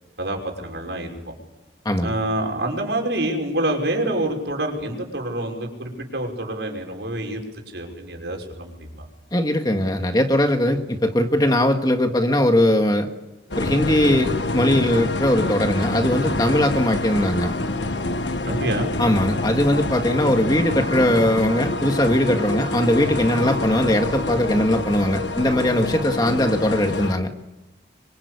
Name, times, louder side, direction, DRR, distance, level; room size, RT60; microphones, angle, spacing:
voice 1, 0.2-1.3 2.0-7.4 7.7-9.1 18.4-18.9, right 1 dB, 80° right, 1 dB, 5.9 m, -27 dB
voice 2, 9.3-13.1 13.6-17.5 19.0-27.3, left 1 dB, 20° left, 5 dB, 1.8 m, -20 dB
sound 1, 13.5-27.1, left 2 dB, 90° left, 1.6 m, -26 dB
26.0 x 25.0 x 8.3 m, 1.0 s
head